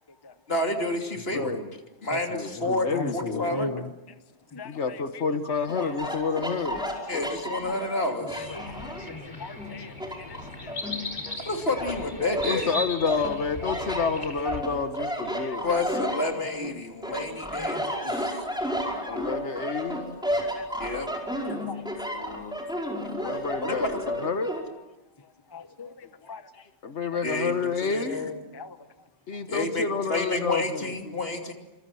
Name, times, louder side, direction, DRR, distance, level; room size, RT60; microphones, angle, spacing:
voice 1, 0.5-1.6 2.0-3.7 7.1-8.5 11.5-12.7 15.6-18.4 20.8-21.1 23.6-24.3 27.2-28.3 29.5-31.5, left 2 dB, 60° left, 3.2 m, -30 dB
voice 2, 1.3-1.7 2.3-3.6 4.6-6.8 8.9-9.3 12.5-15.9 19.1-20.1 22.1-22.6 23.2-24.5 26.2-28.3 29.3-30.9, left 5 dB, 80° left, 1.7 m, -30 dB
voice 3, 2.9-3.9 4.5-4.7 8.5-8.6 9.1-9.9 10.6-11.4 13.7-13.8 14.2-14.3 15.4-15.6 17.1-17.3 17.6-17.7 18.0-18.1 18.9-19.0 20.4-20.7 21.7-21.8 23.2-23.4 25.5-25.9 26.3-26.4 28.5-28.8, left 3 dB, 25° left, 0.9 m, -37 dB
sound 1, 5.7-9.1 9.6-11.4 11.8-12.6 13.1-16.7 17.0-24.6, equal, 5° right, 5.1 m, -32 dB
sound 2, 8.3-14.6, left 1 dB, 45° left, 4.3 m, -38 dB
27.5 x 26.5 x 7.8 m
omnidirectional pair, 1.1 m